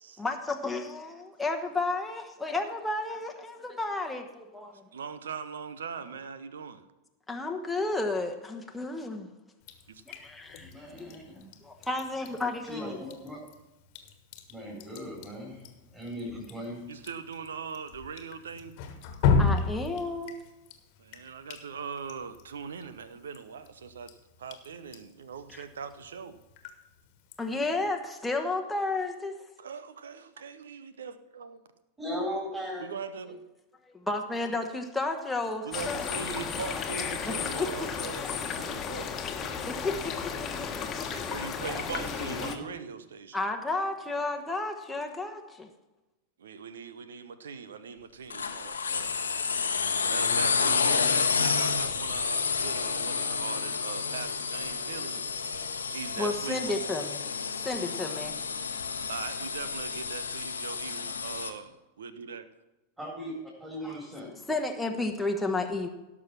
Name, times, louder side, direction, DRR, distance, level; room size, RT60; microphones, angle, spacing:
voice 1, 0.2-4.8 7.3-9.3 10.1-11.1 11.6-13.0 19.4-20.4 25.5-25.6 27.4-29.4 33.9-36.0 37.3-37.7 39.7-41.0 43.3-45.7 56.2-57.2 57.6-58.3 63.8-63.9 64.5-65.9, left 2 dB, 5° left, 2 dB, 1.2 m, -32 dB
voice 2, 4.9-6.8 9.9-10.0 16.9-18.8 21.0-26.4 29.6-31.6 32.8-33.4 35.6-39.2 41.1-43.4 43.7-43.8 46.4-49.3 50.1-55.3 55.9-56.8 59.1-62.5, right 6 dB, 65° right, 13 dB, 0.9 m, -41 dB
Drip, 9.6-27.9, left 5 dB, 45° left, 1.5 m, -35 dB
voice 3, 10.6-11.4 12.6-13.4 14.5-16.8 32.0-32.8 33.3-33.4 36.5-36.6 41.9-42.6 63.0-63.3 63.6-64.3, equal, 10° right, -6 dB, 4.1 m, -38 dB
sound 1, 35.7-42.6, left 7 dB, 25° left, 1.4 m, -34 dB
sound 2, 48.3-61.5, left 5 dB, 70° left, 1.0 m, -30 dB
17.0 x 6.2 x 5.9 m, 1.0 s
figure-of-eight pair, 90°, 0 cm